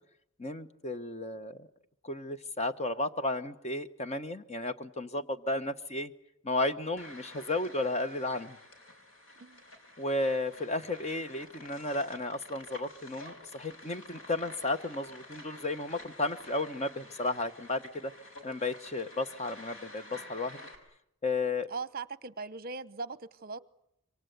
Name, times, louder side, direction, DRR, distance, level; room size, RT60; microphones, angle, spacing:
voice 1, 0.4-1.7 2.0-6.1 6.4-8.6 10.0-18.1 18.4-20.6 21.2-21.7, left 2 dB, 30° left, 1.2 m, -33 dB
sound 1, 7.0-20.8, left 1 dB, 70° left, 5.6 m, -50 dB
voice 2, 21.7-23.6, right 4 dB, 45° right, 0.9 m, -39 dB
27.0 x 24.0 x 8.2 m
head